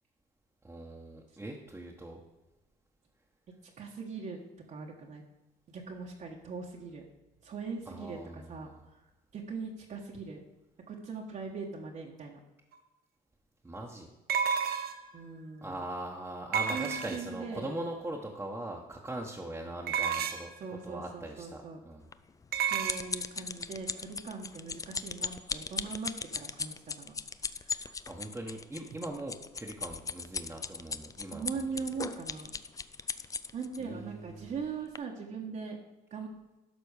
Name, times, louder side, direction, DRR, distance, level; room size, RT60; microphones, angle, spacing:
voice 1, 0.6-2.2 7.9-8.8 13.6-14.1 15.6-20.5 20.8-22.1 28.1-31.6 33.8-34.6, right 1 dB, 10° right, -2 dB, 1.2 m, -41 dB
voice 2, 3.8-4.4 4.7-5.2 5.7-7.0 7.4-8.7 9.3-10.4 10.9-12.4 15.1-15.7 16.7-17.8 20.6-21.8 22.7-27.1 27.7-27.9 31.3-32.5 33.5-35.8 36.1-36.3, right 5 dB, 45° right, -1 dB, 1.3 m, -40 dB
sound 1, 12.7-12.8 14.3-15.1 16.5-17.4 19.9-20.6 22.5-23.0, right 7 dB, 65° right, 0.9 m, -31 dB
sound 2, 22.1-33.8 34.4-34.6 35.0-35.1, left 5 dB, 20° left, 0.4 m, -38 dB
12.0 x 4.2 x 6.5 m, 1.1 s
cardioid pair, 110°, 17 cm